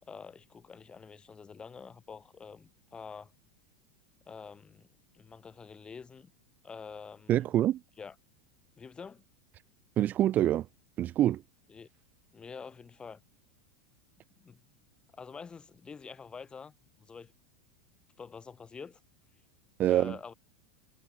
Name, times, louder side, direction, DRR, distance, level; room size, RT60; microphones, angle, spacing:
voice 1, 0.0-3.3 4.3-4.9 5.1-6.3 6.6-7.4 8.0-8.2 8.8-9.3 11.7-11.9 12.3-13.2 14.4-14.6 15.1-17.3 18.2-19.0 19.9-20.3, left 5 dB, 20° left, 6.9 m, -47 dB
voice 2, 7.3-7.8 10.0-10.7 11.0-11.4 19.8-20.2, right 12 dB, 35° right, 0.5 m, -25 dB
supercardioid pair, 120°, 5 cm